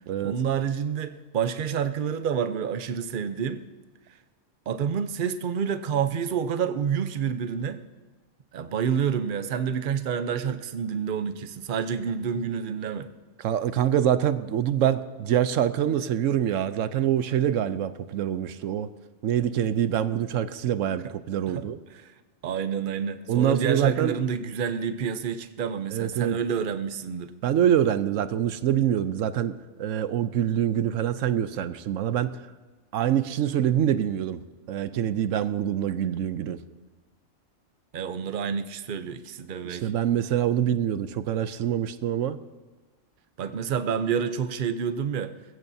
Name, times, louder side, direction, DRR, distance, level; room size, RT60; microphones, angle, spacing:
voice 1, 0.2-3.6 4.7-7.8 8.5-13.1 21.0-21.1 21.5-21.6 21.9-22.1 22.4-27.3 37.9-39.9 43.4-45.3, right 7 dB, 50° right, 10 dB, 0.8 m, -28 dB
voice 2, 13.4-18.9 19.2-21.8 23.3-24.2 25.9-26.4 27.4-32.4 32.9-34.4 34.7-36.6 39.6-42.4, right 10 dB, 85° right, 13 dB, 1.0 m, -25 dB
21.0 x 15.5 x 2.7 m, 1.3 s
omnidirectional pair, 1.3 m